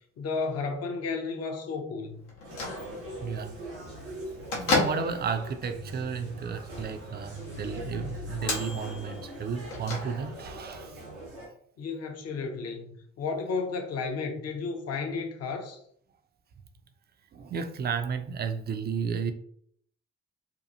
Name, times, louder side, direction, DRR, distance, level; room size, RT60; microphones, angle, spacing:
voice 1, 0.2-2.2 11.8-15.8, left 4 dB, 45° left, 0.7 m, -33 dB
Bell / Microwave oven, 2.3-10.6, left 3 dB, 80° left, 0.7 m, -35 dB
sound 1, 2.4-11.5, right 1 dB, 85° right, 0.8 m, -43 dB
voice 2, 3.2-3.6 4.6-11.0 17.3-19.3, right 6 dB, 30° right, 0.4 m, -33 dB
2.8 x 2.3 x 2.5 m
figure-of-eight pair, 40°, 34 cm